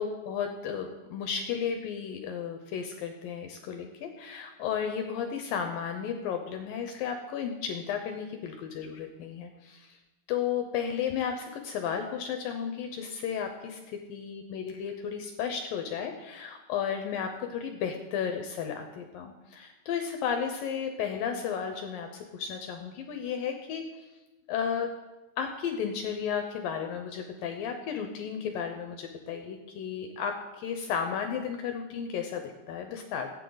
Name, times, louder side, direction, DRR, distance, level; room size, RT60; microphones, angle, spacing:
voice 1, 0.0-10.0 10.3-23.8 24.5-24.9 25.4-33.3, left 7 dB, 75° left, 5 dB, 2.2 m, -33 dB
19.5 x 8.7 x 3.9 m, 1.1 s
omnidirectional pair, 4.8 m